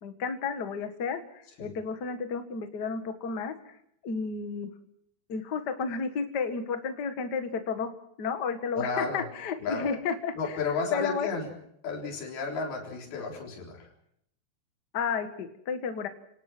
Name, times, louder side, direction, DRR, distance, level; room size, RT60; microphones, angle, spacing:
voice 1, 0.0-3.7 4.0-4.7 5.3-7.9 8.2-10.6 10.9-11.3 14.9-16.1, left 5 dB, 90° left, 8 dB, 0.9 m, -32 dB
voice 2, 8.7-9.2 9.6-9.9 10.4-11.5 11.8-13.9, left 4 dB, 60° left, -1 dB, 5.7 m, -32 dB
27.5 x 18.5 x 6.1 m, 0.72 s
omnidirectional pair, 4.9 m